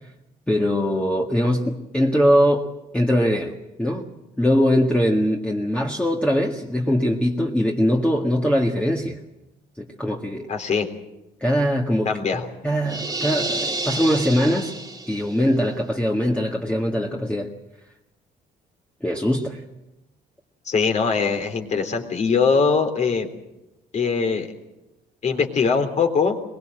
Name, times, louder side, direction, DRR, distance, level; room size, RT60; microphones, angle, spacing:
voice 1, 0.5-3.5 3.8-4.1 4.4-9.2 9.8-10.5 11.4-14.8 15.1-17.5 19.0-19.6, equal, 5° left, 0 dB, 1.9 m, -22 dB
voice 2, 10.5-10.9 12.0-12.5 20.7-23.3 23.9-24.5 25.2-26.4, left 5 dB, 45° left, 5 dB, 3.5 m, -21 dB
sound 1, 12.9-15.4, right 2 dB, 20° right, 2.0 m, -29 dB
22.5 x 21.0 x 7.8 m, 0.96 s
cardioid pair, 110°, 17 cm